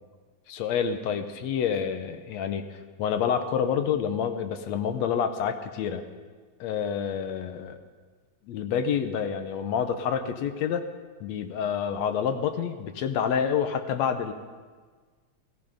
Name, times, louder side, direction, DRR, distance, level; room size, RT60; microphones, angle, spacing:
voice 1, 0.5-2.6 3.0-6.1 6.6-7.8 8.5-10.9 11.2-14.3, left 7 dB, 70° left, 8 dB, 2.0 m, -28 dB
17.0 x 14.5 x 5.1 m, 1.5 s
omnidirectional pair, 3.3 m